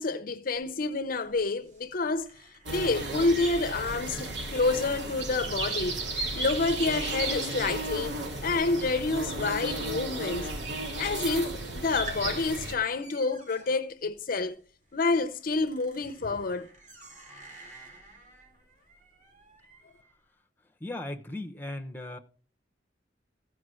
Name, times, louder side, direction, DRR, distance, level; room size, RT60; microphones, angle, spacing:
voice 1, 0.0-2.3 2.7-6.0 6.4-8.1 8.4-10.5 11.0-11.5 11.7-14.6 14.9-16.7, left 3 dB, 50° left, 0.6 m, -28 dB
sound 1, 0.6-10.1 10.4-11.0 11.4-11.5 11.8-20.1, right 1 dB, 40° right, 4.3 m, -52 dB
sound 2, 2.7-12.8, right 2 dB, 70° right, 2.6 m, -34 dB
voice 2, 20.8-22.2, left 1 dB, 10° left, 0.9 m, -37 dB
15.0 x 5.0 x 6.3 m
head